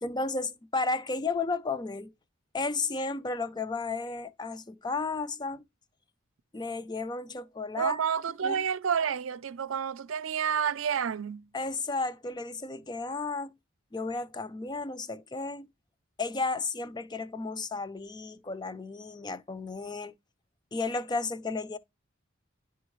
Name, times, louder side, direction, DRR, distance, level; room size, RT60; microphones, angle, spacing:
voice 1, 0.0-2.1 2.5-5.6 6.5-8.0 8.4-8.6 11.5-13.5 13.9-15.7 16.2-20.1 20.7-21.8, left 3 dB, 20° left, 0.5 m, -33 dB
voice 2, 7.8-11.5, right 7 dB, 80° right, 0.5 m, -29 dB
10.5 x 3.6 x 3.1 m
head